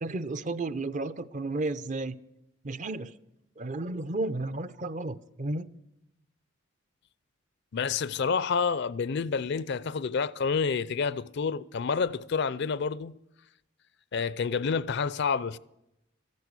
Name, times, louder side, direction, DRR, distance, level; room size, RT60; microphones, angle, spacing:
voice 1, 0.0-2.1 2.6-3.1 3.6-5.7, right 2 dB, 35° right, 0.5 m, -33 dB
voice 2, 7.7-13.1 14.1-15.6, left 5 dB, 55° left, 0.4 m, -28 dB
13.5 x 10.5 x 8.2 m
head